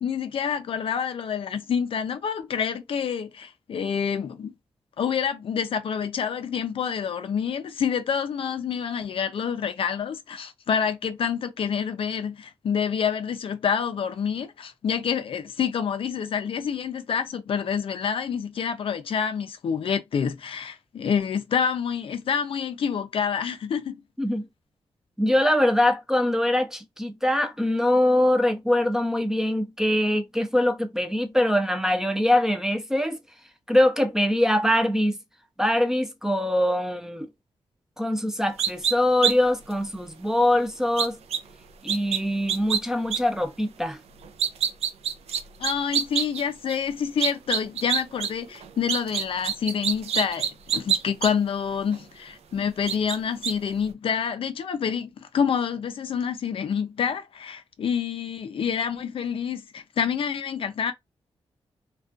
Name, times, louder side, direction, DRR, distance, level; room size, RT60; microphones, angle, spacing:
voice 1, 0.0-4.5 5.0-24.0 45.6-60.9, left 7 dB, 60° left, 0.4 m, -27 dB
voice 2, 25.2-33.2 33.7-35.2 35.6-37.3 38.0-41.2 41.8-44.0, left 1 dB, 5° right, 0.4 m, -23 dB
sound 1, 38.6-38.9 39.2-39.3 39.7-39.8 41.0-41.4 41.9-42.2 42.5-42.8 43.1-43.2 44.2-46.4 46.7-46.8 47.2-48.3 48.5-51.3 51.9-52.0 52.9-53.2 53.4-53.5, right 8 dB, 85° right, 0.4 m, -25 dB
2.3 x 2.2 x 2.4 m
wide cardioid pair, 115°, 10 cm